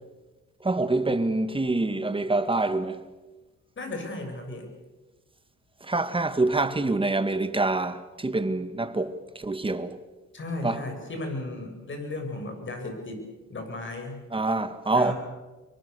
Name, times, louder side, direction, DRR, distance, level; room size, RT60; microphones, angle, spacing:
voice 1, 0.6-3.0 5.8-10.0 10.6-10.8 14.3-15.1, right 2 dB, 15° right, 1.8 m, -26 dB
voice 2, 3.8-4.7 10.3-13.2 13.5-14.2 14.9-15.1, left 2 dB, 40° left, 7.5 m, -35 dB
26.0 x 23.5 x 6.8 m
cardioid pair, 90°, 30 cm